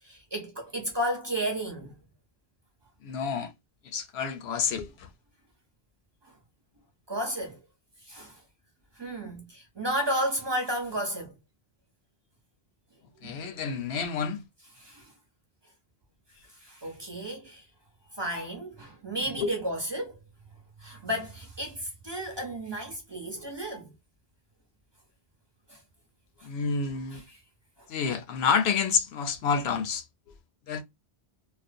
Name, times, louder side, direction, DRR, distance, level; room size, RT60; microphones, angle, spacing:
voice 1, 0.0-2.0 6.2-6.3 7.1-7.6 8.0-8.4 8.9-11.3 13.2-13.4 14.8-15.1 16.5-17.7 18.1-20.2 20.8-23.9 25.7-25.8 26.4-26.5 27.1-27.4 27.8-27.9, right 1 dB, 30° right, 0.6 m, -33 dB
voice 2, 3.0-3.5 3.9-5.1 13.2-14.4 19.4-19.5 26.4-27.2 27.9-30.0 30.7-30.8, left 6 dB, 80° left, 0.8 m, -28 dB
2.4 x 2.0 x 2.4 m
omnidirectional pair, 1.1 m